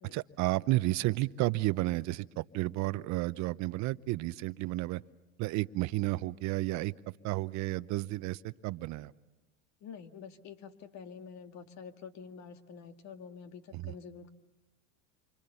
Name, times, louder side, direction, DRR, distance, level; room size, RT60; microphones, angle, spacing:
voice 1, 0.1-5.0 5.4-6.9 7.2-9.1 13.7-13.9, right 18 dB, 50° right, 16 dB, 0.8 m, -32 dB
voice 2, 9.8-14.3, left 6 dB, 45° left, 7 dB, 2.0 m, -47 dB
28.5 x 25.0 x 7.0 m, 1.1 s
supercardioid pair, 105°, 37 cm